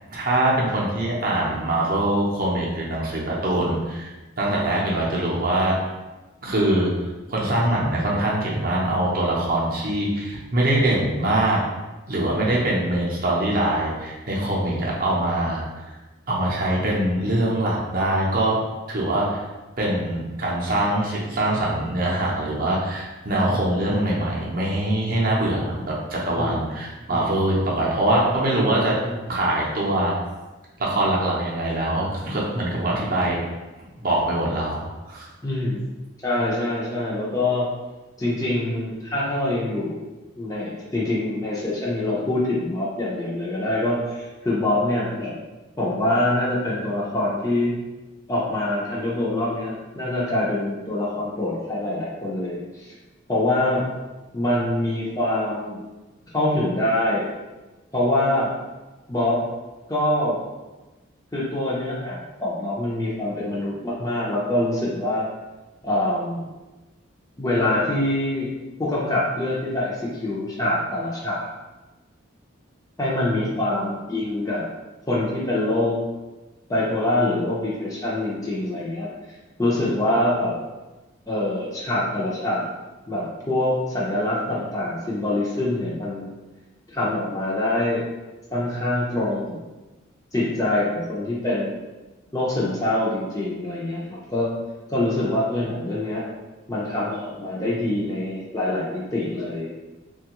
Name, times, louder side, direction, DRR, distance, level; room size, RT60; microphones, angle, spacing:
voice 1, 0.1-4.1 4.4-5.8 6.4-6.9 7.3-11.6 12.1-15.8 16.3-18.6 18.9-19.4 19.8-28.9 29.3-30.2 30.8-33.4 33.8-35.3, right 1 dB, 45° right, -4 dB, 0.6 m, -23 dB
voice 2, 35.4-35.8 36.2-37.7 38.2-40.0 40.4-45.3 45.8-47.7 48.3-52.9 53.3-53.9 54.3-55.8 56.3-57.3 57.9-58.5 59.1-59.4 59.9-60.4 61.3-65.3 65.8-66.5 67.4-68.5 68.8-71.5 73.0-74.6 75.1-76.0 76.7-79.1 79.6-80.6 81.3-82.7 83.1-86.3 86.9-88.1 88.5-89.6 90.3-91.8 92.3-94.5 94.9-96.2 96.7-99.7, left 1 dB, 15° left, -6 dB, 0.5 m, -24 dB
3.3 x 2.3 x 2.9 m, 1.1 s
head